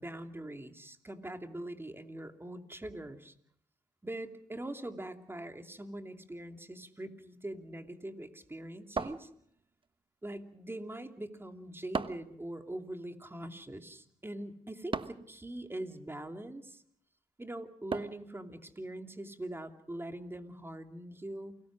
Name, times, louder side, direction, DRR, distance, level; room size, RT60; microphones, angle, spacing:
voice 1, 0.0-3.3 4.0-9.3 10.2-16.8 17.4-21.6, right 1 dB, 15° right, 6 dB, 2.8 m, -43 dB
sound 1, 9.0-9.8 11.9-12.4 14.9-15.3 17.9-18.3, right 4 dB, 40° right, 1.2 m, -36 dB
28.5 x 19.0 x 6.2 m, 0.66 s
cardioid pair, 65°, 14 cm